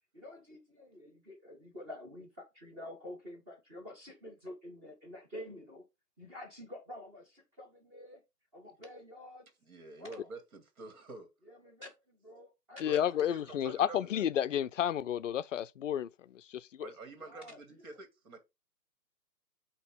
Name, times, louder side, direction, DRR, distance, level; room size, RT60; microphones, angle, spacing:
voice 1, 0.1-5.8 6.2-8.2 8.5-9.5 10.0-10.3 11.4-13.2 17.2-17.6, left 1 dB, 15° right, 1.1 m, -49 dB
voice 2, 9.6-11.3 12.8-14.2 16.8-18.4, right 3 dB, 55° right, 2.4 m, -48 dB
voice 3, 12.8-16.9, left 10 dB, 55° left, 0.5 m, -32 dB
8.2 x 2.9 x 4.9 m
hypercardioid pair, 150°, 47 cm